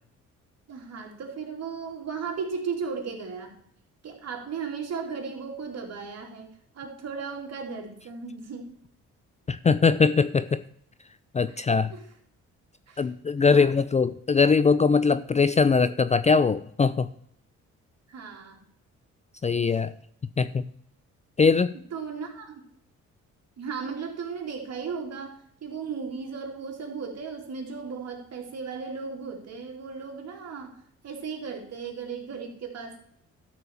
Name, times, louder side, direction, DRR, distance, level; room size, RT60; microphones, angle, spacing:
voice 1, 0.7-3.6 4.0-8.7 11.5-11.6 11.9-12.1 12.9-13.1 13.4-13.7 18.1-18.6 21.9-22.7 23.6-33.0, right 5 dB, 55° right, 1 dB, 2.8 m, -36 dB
voice 2, 9.5-10.6 11.3-11.9 13.0-17.1 19.4-19.9 20.4-20.6 21.4-21.8, left 5 dB, 25° left, 14 dB, 0.4 m, -21 dB
12.5 x 4.5 x 7.1 m, 0.66 s
cardioid pair, 90°, 30 cm